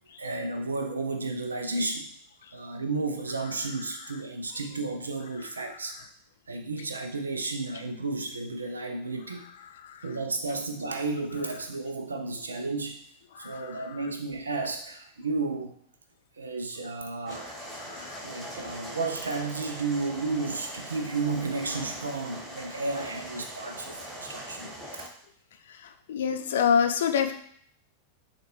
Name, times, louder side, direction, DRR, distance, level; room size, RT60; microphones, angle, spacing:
voice 1, 0.2-2.1 2.5-5.9 6.5-9.5 10.0-13.0 13.4-15.7 16.4-17.5 18.2-24.7, right 3 dB, 75° right, 5 dB, 0.6 m, -32 dB
sound 1, 17.3-25.1, equal, 10° right, 1.4 m, -41 dB
voice 2, 26.1-27.3, left 7 dB, 60° left, 7 dB, 0.4 m, -25 dB
6.4 x 2.5 x 3.1 m, 0.64 s
figure-of-eight pair, 90°, 0 cm